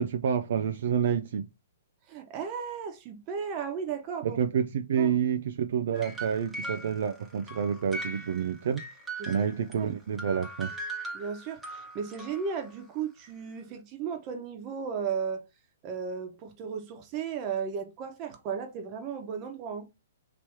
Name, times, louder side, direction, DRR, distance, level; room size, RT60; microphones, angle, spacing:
voice 1, 0.0-1.5 4.2-8.8 9.3-10.7, right 7 dB, 65° right, 0.4 m, -28 dB
voice 2, 2.1-4.4 5.0-5.1 9.2-9.5 9.8-9.9 11.1-15.5 15.8-19.9, right 6 dB, 30° right, 1.1 m, -35 dB
sound 1, 5.9-9.8 10.2-12.8, right 2 dB, 5° right, 1.0 m, -40 dB
3.0 x 3.0 x 4.6 m
hypercardioid pair, 140°, 0 cm